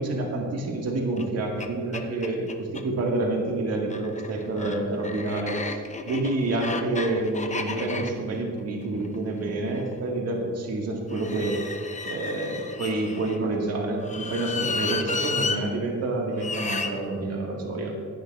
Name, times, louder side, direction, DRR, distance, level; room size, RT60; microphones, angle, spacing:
voice 1, 0.0-5.8 6.1-11.6 12.1-18.0, right 2 dB, 55° right, 0 dB, 1.7 m, -28 dB
sound 1, 1.2-1.3 1.6-1.7 1.9-2.8 3.8-9.9 11.1-13.4 14.0-15.6 16.4-16.9, left 4 dB, 25° left, 0.7 m, -32 dB
16.0 x 10.0 x 2.4 m, 2.2 s
cardioid pair, 90°, 30 cm